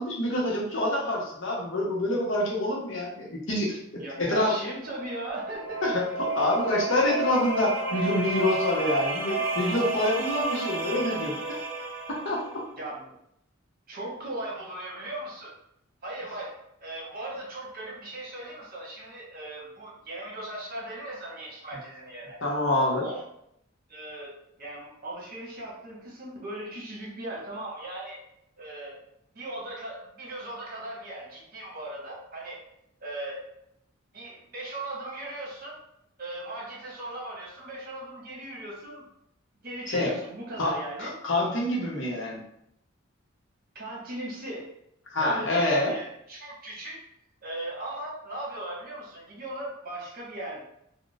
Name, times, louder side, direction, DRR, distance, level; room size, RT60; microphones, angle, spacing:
voice 1, 0.0-4.6 5.8-11.4 12.2-12.6 22.4-23.0 39.9-40.1 40.6-40.7 41.0-42.4 45.1-45.9, left 1 dB, 65° left, -3 dB, 0.9 m, -26 dB
voice 2, 4.0-5.8 12.7-13.1 13.9-15.5 16.0-22.4 23.0-23.2 23.9-28.2 28.6-29.0 29.3-32.6 33.0-33.4 34.1-35.8 36.2-39.0 39.6-41.1 43.7-44.7 45.2-47.0 47.4-50.6, right 1 dB, 45° right, -4 dB, 1.0 m, -38 dB
sound 1, 4.8-12.5, right 3 dB, 15° right, 1.1 m, -32 dB
2.4 x 2.2 x 3.9 m, 0.76 s
head